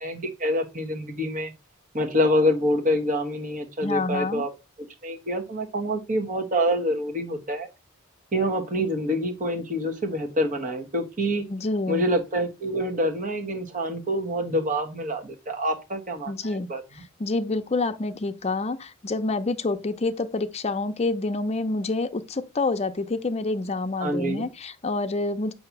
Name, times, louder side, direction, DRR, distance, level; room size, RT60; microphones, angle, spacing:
voice 1, 0.0-1.5 1.9-4.5 5.0-7.7 8.3-11.4 11.9-17.0 24.0-24.5, equal, 40° right, 1.3 m, -26 dB
voice 2, 3.8-4.5 11.5-12.1 16.3-16.7 17.2-25.5, left 3 dB, 30° left, 0.6 m, -27 dB
7.7 x 2.8 x 5.9 m
head